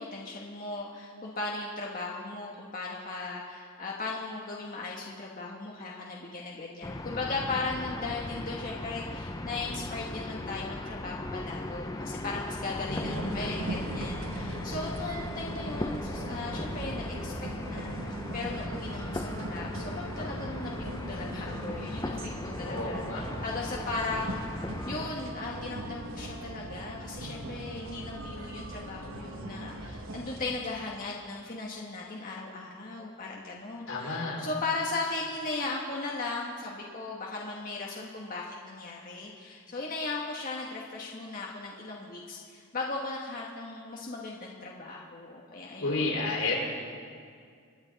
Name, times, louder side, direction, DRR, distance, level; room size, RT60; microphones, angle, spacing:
voice 1, 0.0-17.3 17.6-24.4 24.9-46.2, left 3 dB, 40° left, -3 dB, 1.3 m, -37 dB
sound 1, 6.8-25.1, left 1 dB, 15° left, 0.5 m, -38 dB
voice 2, 12.9-13.5 22.6-23.2 33.9-34.4 45.8-46.5, left 3 dB, 85° left, -4 dB, 4.6 m, -31 dB
sound 2, 13.0-30.6, right 1 dB, 70° right, 1.1 m, -39 dB
27.5 x 9.8 x 4.0 m, 2.2 s
head